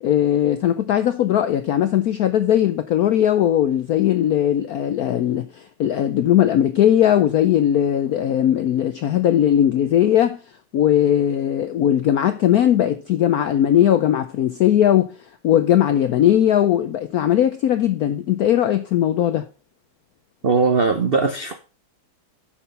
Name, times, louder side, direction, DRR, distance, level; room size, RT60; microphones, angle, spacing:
voice 1, 0.0-10.4 10.7-15.1 15.4-19.5, left 11 dB, 80° left, 0.8 m, -19 dB
voice 2, 20.4-21.6, right 4 dB, 70° right, 0.5 m, -19 dB
8.5 x 6.0 x 5.4 m
omnidirectional pair, 2.2 m